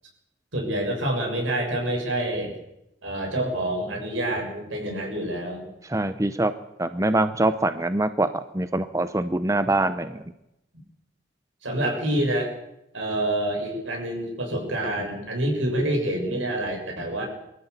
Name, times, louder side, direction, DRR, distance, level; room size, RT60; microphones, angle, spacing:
voice 1, 0.5-2.5 3.0-5.7 11.6-12.5 12.9-17.3, right 1 dB, 90° right, 1 dB, 7.2 m, -27 dB
voice 2, 5.9-6.5 6.8-10.2, right 2 dB, 15° right, 11 dB, 0.8 m, -24 dB
23.5 x 14.0 x 8.3 m, 0.85 s
head